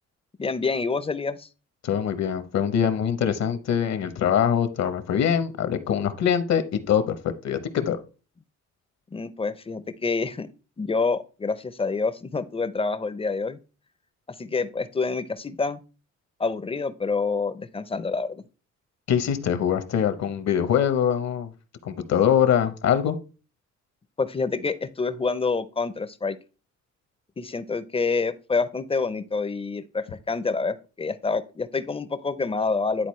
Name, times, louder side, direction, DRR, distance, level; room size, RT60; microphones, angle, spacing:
voice 1, 0.4-1.5 9.1-10.5 10.8-13.6 14.4-15.8 16.4-18.4 24.2-26.4 27.4-33.1, left 4 dB, 20° left, 13 dB, 0.5 m, -27 dB
voice 2, 1.8-8.0 19.1-21.5 21.8-23.2, left 8 dB, 60° left, 11 dB, 0.9 m, -23 dB
10.5 x 4.0 x 3.1 m, 0.34 s
cardioid pair, 90°, 30 cm